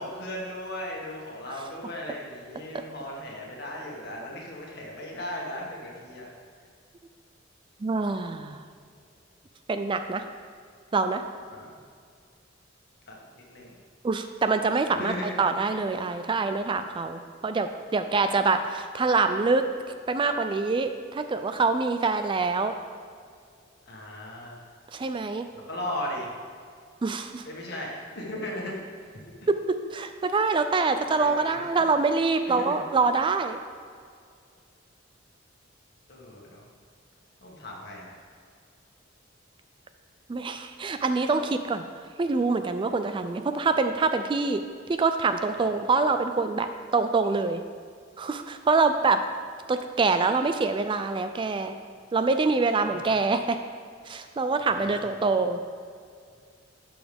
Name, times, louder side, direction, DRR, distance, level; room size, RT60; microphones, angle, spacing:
voice 1, 0.0-6.3 11.5-11.8 13.1-13.8 15.0-15.4 23.9-24.6 25.5-26.3 27.5-29.1 31.1-31.8 32.6-32.8 36.1-36.6 37.4-38.1 45.5-45.7 52.9-53.1 54.7-55.1, left 1 dB, 60° left, -2 dB, 1.9 m, -37 dB
voice 2, 7.8-8.6 9.7-10.3 10.9-11.2 14.0-19.7 20.1-22.7 24.9-25.5 27.0-27.4 29.5-33.6 40.3-41.8 42.2-44.6 44.9-47.6 48.2-49.2 49.7-51.7 52.1-53.6 54.1-55.6, right 4 dB, 25° right, 8 dB, 0.3 m, -25 dB
11.5 x 6.3 x 3.5 m, 2.2 s
head